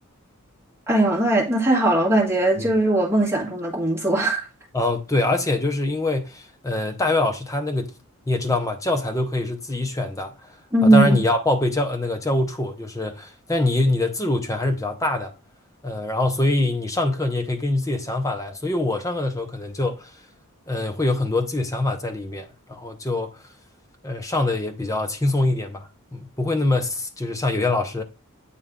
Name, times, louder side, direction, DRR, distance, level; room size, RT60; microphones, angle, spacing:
voice 1, 0.9-4.4 10.7-11.2, right 1 dB, 10° right, 1.7 m, -19 dB
voice 2, 4.7-8.0 8.3-10.3 10.8-15.3 15.8-20.1 20.7-23.4 24.0-28.0, left 2 dB, 15° left, 0.7 m, -24 dB
8.2 x 3.1 x 3.7 m
head